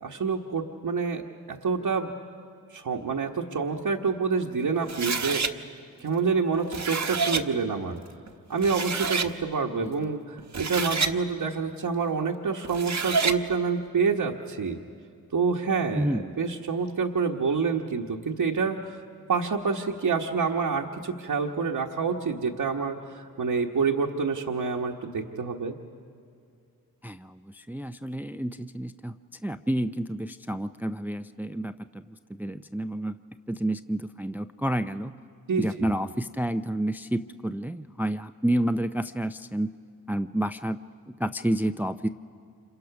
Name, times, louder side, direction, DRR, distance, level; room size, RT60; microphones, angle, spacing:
voice 1, 0.0-1.2 1.5-2.1 2.7-5.4 6.0-8.0 8.5-14.8 15.3-19.0 19.3-25.8 35.5-35.9, right 5 dB, 60° right, -1 dB, 1.3 m, -27 dB
sound 1, 4.9-5.5 6.5-7.4 8.3-8.4 8.6-9.3 10.4-11.2 12.6-13.4, right 4 dB, 45° right, 1.1 m, -28 dB
voice 2, 16.0-16.4 27.0-29.2 29.4-32.0 32.3-33.2 33.5-35.1 35.6-39.7 40.1-40.8 41.2-42.1, right 1 dB, 5° right, 10 dB, 0.5 m, -29 dB
26.5 x 23.0 x 5.9 m, 2.3 s
cardioid pair, 40°, 38 cm